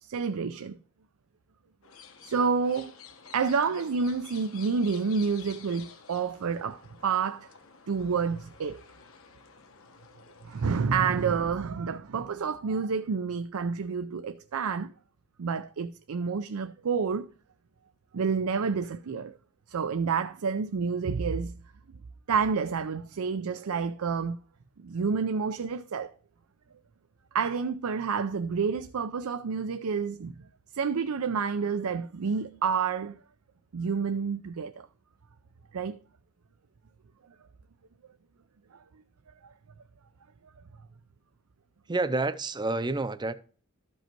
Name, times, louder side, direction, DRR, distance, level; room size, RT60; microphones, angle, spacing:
voice 1, 0.0-0.8 2.2-2.9 3.3-7.5 7.9-8.8 10.4-14.9 15.4-17.3 18.1-19.4 19.7-21.5 22.3-24.4 24.8-26.1 27.3-30.3 30.7-33.2 33.7-34.9 35.7-36.0, right 5 dB, 80° right, 0.5 m, -29 dB
sound 1, 1.8-10.7, left 6 dB, 65° left, 1.1 m, -51 dB
voice 2, 41.9-43.3, right 2 dB, 20° right, 0.5 m, -29 dB
13.0 x 5.4 x 4.4 m
head